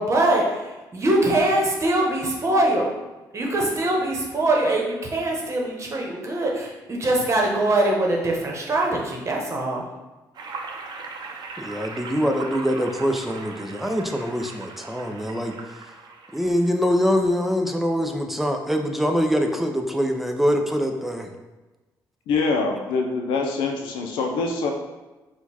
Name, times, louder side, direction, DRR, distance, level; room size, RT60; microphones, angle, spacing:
voice 1, 0.0-2.9 3.3-9.8, right 1 dB, 35° right, -1 dB, 1.0 m, -23 dB
sound 1, 10.3-16.7, right 4 dB, 60° right, 0.6 m, -39 dB
voice 2, 11.6-15.5 16.3-21.3, equal, ahead, 4 dB, 0.5 m, -24 dB
voice 3, 22.3-24.7, left 4 dB, 90° left, 2 dB, 0.5 m, -24 dB
4.3 x 2.3 x 4.2 m, 1.1 s
cardioid pair, 80°, 8 cm